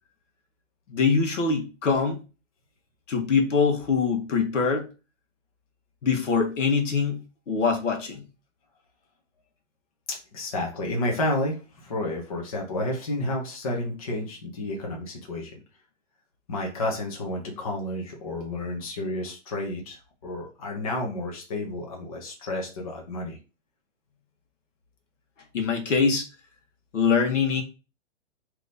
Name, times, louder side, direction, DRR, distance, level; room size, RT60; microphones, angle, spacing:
voice 1, 0.9-2.2 3.1-4.9 6.0-7.2 7.5-8.2 25.5-26.3 26.9-27.6, left 5 dB, 75° left, 1.3 m, -23 dB
voice 2, 10.1-15.6 16.5-23.4, left 1 dB, 30° left, 0.8 m, -31 dB
3.5 x 3.0 x 3.9 m
hypercardioid pair, 175°, 37 cm